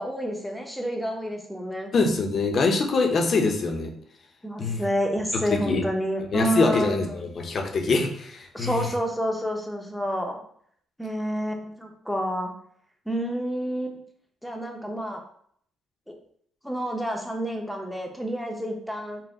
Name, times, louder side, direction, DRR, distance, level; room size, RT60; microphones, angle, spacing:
voice 1, 0.0-1.9 4.4-7.2 8.5-10.4 11.0-12.5 13.1-14.0 14.4-15.2 16.1-16.2 16.6-19.2, equal, ahead, 2 dB, 0.7 m, -29 dB
voice 2, 1.9-3.9 4.6-4.8 5.3-5.8 6.3-8.9, left 3 dB, 50° left, 3 dB, 0.7 m, -24 dB
4.1 x 2.1 x 3.7 m, 0.64 s
cardioid pair, 90°, 0 cm